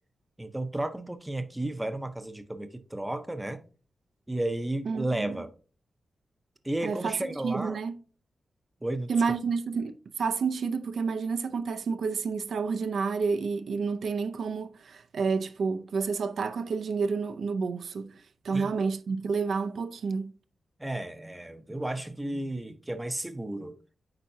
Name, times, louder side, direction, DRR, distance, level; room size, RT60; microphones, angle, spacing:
voice 1, 0.4-3.6 4.3-5.5 6.6-7.8 8.8-9.1 18.5-18.7 20.8-23.8, right 1 dB, 10° right, 0.6 m, -33 dB
voice 2, 4.9-5.4 6.8-8.0 9.1-20.4, right 5 dB, 75° right, 0.5 m, -30 dB
8.7 x 4.6 x 2.7 m
wide cardioid pair, 145°, 0 cm